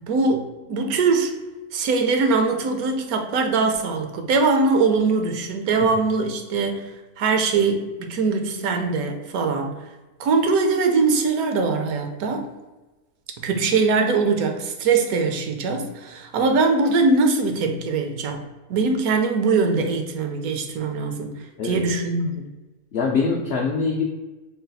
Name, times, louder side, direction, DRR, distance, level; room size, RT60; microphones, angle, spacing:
voice 1, 0.0-1.3 1.7-6.9 7.2-9.8 10.2-12.5 13.4-18.4 18.7-21.3 21.6-22.4, right 4 dB, 75° right, 5 dB, 1.0 m, -22 dB
voice 2, 22.9-24.1, left 4 dB, 75° left, 0 dB, 0.5 m, -23 dB
4.0 x 2.3 x 3.9 m, 1.1 s
omnidirectional pair, 1.6 m